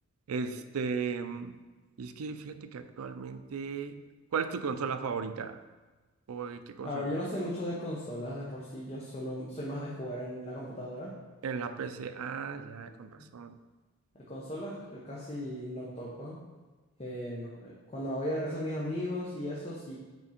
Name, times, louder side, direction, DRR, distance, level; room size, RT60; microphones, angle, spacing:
voice 1, 0.3-1.6 2.0-4.0 4.3-5.6 6.3-7.1 11.4-13.6, right 5 dB, 80° right, 10 dB, 0.4 m, -36 dB
voice 2, 6.8-11.1 12.8-13.3 14.1-16.4 17.0-20.0, equal, 30° left, -5 dB, 0.8 m, -37 dB
6.3 x 4.3 x 4.2 m, 1.3 s
head